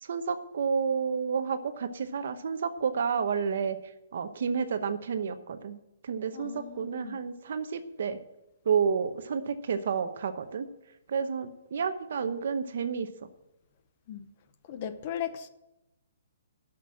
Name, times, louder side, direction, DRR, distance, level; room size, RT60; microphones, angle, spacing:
voice 1, 0.0-3.8 4.1-5.8 6.0-8.2 8.6-10.7 11.1-13.1, right 6 dB, 50° right, 0.9 m, -30 dB
voice 2, 6.3-7.2 14.1-14.3 14.7-15.5, left 9 dB, 25° left, 0.6 m, -37 dB
11.5 x 6.1 x 7.4 m
hypercardioid pair, 180°, 0 cm